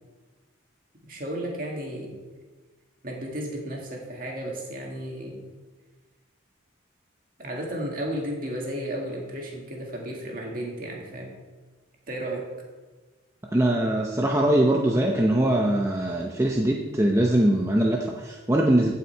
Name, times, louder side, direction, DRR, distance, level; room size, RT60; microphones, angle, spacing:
voice 1, 1.1-2.2 3.0-5.4 7.4-11.4 12.1-12.4, right 1 dB, 45° right, -1 dB, 2.1 m, -33 dB
voice 2, 13.5-18.9, right 1 dB, 15° right, -1 dB, 0.7 m, -22 dB
15.5 x 5.8 x 4.5 m, 1.3 s
head